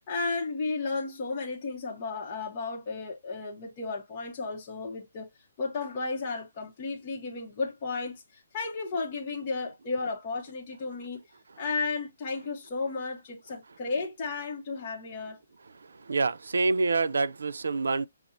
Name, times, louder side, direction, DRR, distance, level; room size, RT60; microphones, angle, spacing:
voice 1, 0.1-5.3 5.6-11.2 11.6-15.4, left 4 dB, 25° left, 0.7 m, -33 dB
voice 2, 15.8-18.1, right 3 dB, 90° right, 0.4 m, -27 dB
6.0 x 2.0 x 2.5 m
hypercardioid pair, 175°, 0 cm